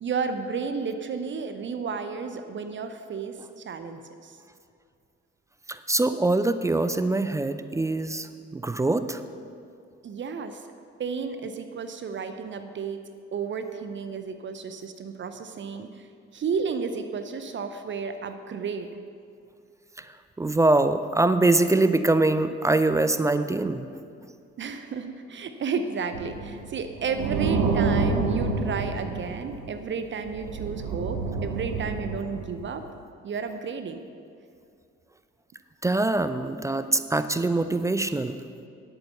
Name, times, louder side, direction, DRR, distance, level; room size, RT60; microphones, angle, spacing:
voice 1, 0.0-4.4 10.0-10.6 11.0-13.0 13.3-16.1 16.3-19.0 24.6-32.8 33.2-34.0, right 5 dB, 35° right, 9 dB, 0.7 m, -32 dB
voice 2, 5.7-8.3 8.5-9.2 20.4-23.8 35.8-38.4, right 2 dB, 10° right, 11 dB, 0.4 m, -23 dB
sound 1, 26.1-29.8 30.3-32.8, right 4 dB, 60° right, 1.1 m, -28 dB
10.5 x 8.5 x 5.6 m, 2.4 s
figure-of-eight pair, 50°, 35 cm